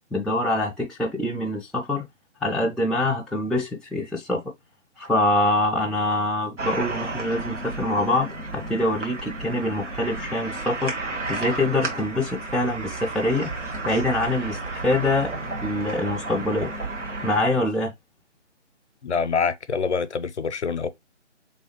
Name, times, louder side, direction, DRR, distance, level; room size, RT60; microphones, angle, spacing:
voice 1, 0.1-2.1 2.4-4.4 5.0-10.9 11.3-13.5 13.8-15.3 15.6-16.7 17.2-17.9, left 1 dB, ahead, 0.3 m, -24 dB
sound 1, 6.6-17.4, right 3 dB, 75° right, 1.5 m, -32 dB
voice 2, 19.0-20.9, left 5 dB, 70° left, 0.5 m, -25 dB
3.3 x 3.1 x 2.9 m
figure-of-eight pair, 175°, 36 cm